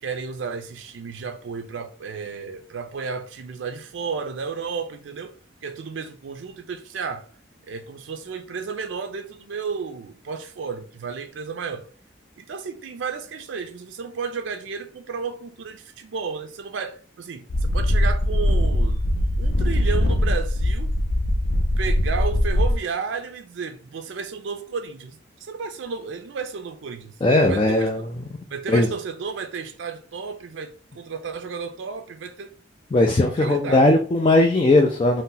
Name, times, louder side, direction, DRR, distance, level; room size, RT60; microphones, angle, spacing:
voice 1, 0.0-5.4 5.6-7.3 7.6-11.9 12.4-19.0 19.4-20.9 21.8-28.1 28.5-32.5 33.4-33.9, right 5 dB, 80° right, 0.4 m, -33 dB
sound 1, 17.5-22.8, left 1 dB, 85° left, 0.5 m, -21 dB
voice 2, 27.2-28.0 28.7-28.9 32.9-35.2, left 2 dB, 25° left, 0.3 m, -18 dB
2.7 x 2.1 x 3.8 m
head